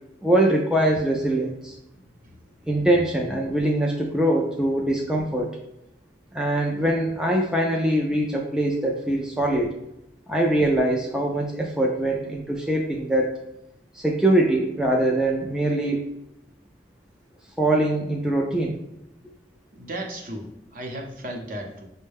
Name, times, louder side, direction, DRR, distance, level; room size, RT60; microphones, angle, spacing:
voice 1, 0.2-1.8 2.7-5.6 6.3-9.7 10.3-13.4 13.9-16.0 17.6-18.8, right 1 dB, 5° right, 0 dB, 0.3 m, -23 dB
voice 2, 2.2-2.7 19.7-21.9, right 1 dB, 50° right, 1 dB, 0.7 m, -36 dB
5.3 x 2.1 x 3.4 m, 0.86 s
head